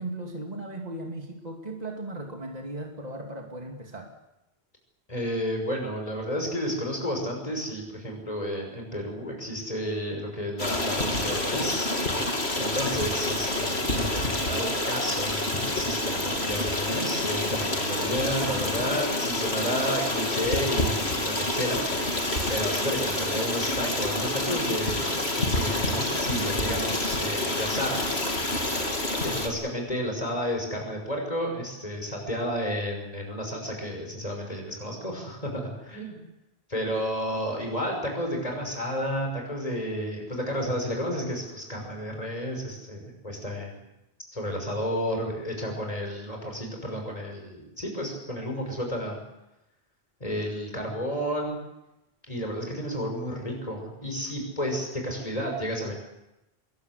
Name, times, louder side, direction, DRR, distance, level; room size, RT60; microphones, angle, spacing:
voice 1, 0.0-4.1, right 2 dB, 40° right, 2 dB, 2.7 m, -37 dB
voice 2, 5.1-11.9 12.6-22.1 22.5-28.1 29.2-36.2 36.7-43.8 44.3-49.2 50.2-51.6 52.3-55.9, equal, 35° left, 2 dB, 6.3 m, -31 dB
Stream, 10.6-29.5, left 1 dB, 80° left, 3.5 m, -28 dB
25.5 x 21.5 x 8.2 m, 0.92 s
omnidirectional pair, 1.1 m